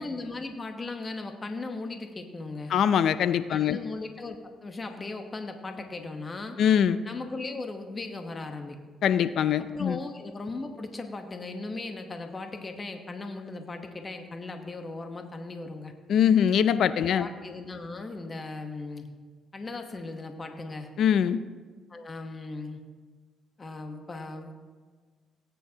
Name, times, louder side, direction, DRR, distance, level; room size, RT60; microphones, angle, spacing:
voice 1, 0.0-2.7 3.5-6.6 7.0-8.8 9.6-15.9 17.1-19.1 19.5-20.9 21.9-22.8 23.6-24.7, left 3 dB, 30° left, 5 dB, 1.0 m, -37 dB
voice 2, 2.7-3.8 6.6-7.0 9.0-10.0 16.1-17.3 21.0-21.4, left 8 dB, 70° left, 14 dB, 0.4 m, -22 dB
18.0 x 9.1 x 2.9 m, 1.5 s
cardioid pair, 90°, 0 cm